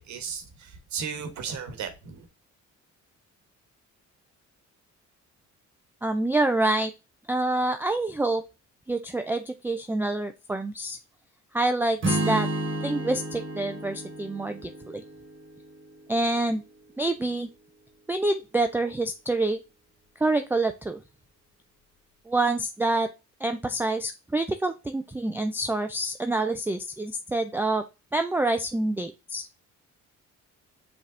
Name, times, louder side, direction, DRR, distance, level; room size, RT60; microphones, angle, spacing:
voice 1, 0.0-2.3, right 6 dB, 65° right, 1.1 m, -35 dB
voice 2, 6.0-6.9 7.3-8.4 8.9-11.0 11.5-12.5 12.8-15.0 16.1-16.6 17.0-17.5 18.1-19.6 20.2-21.0 22.3-23.1 23.4-27.8 28.1-29.5, right 2 dB, 5° right, 0.3 m, -27 dB
Strum, 12.0-16.2, right 1 dB, 40° right, 1.4 m, -31 dB
5.2 x 3.4 x 2.5 m
cardioid pair, 90°, 30 cm